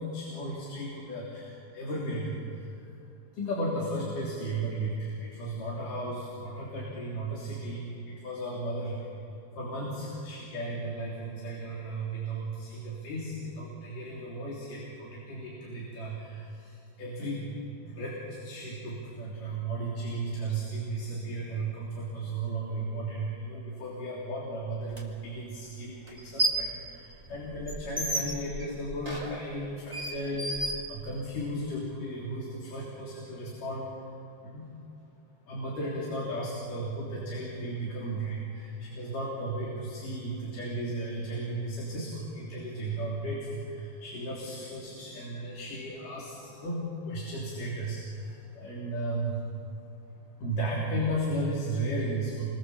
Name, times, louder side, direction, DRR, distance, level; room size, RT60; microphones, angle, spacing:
voice 1, 0.0-2.9 3.3-9.1 9.6-17.5 17.9-33.9 34.4-34.7 35.5-49.4 50.4-52.4, right 1 dB, 80° left, -4 dB, 5.1 m, -35 dB
sound 1, 24.9-25.0 26.1-26.7 27.1-31.5, right 1 dB, 10° right, 3.0 m, -33 dB
29.0 x 24.0 x 7.3 m, 2.7 s
omnidirectional pair, 3.7 m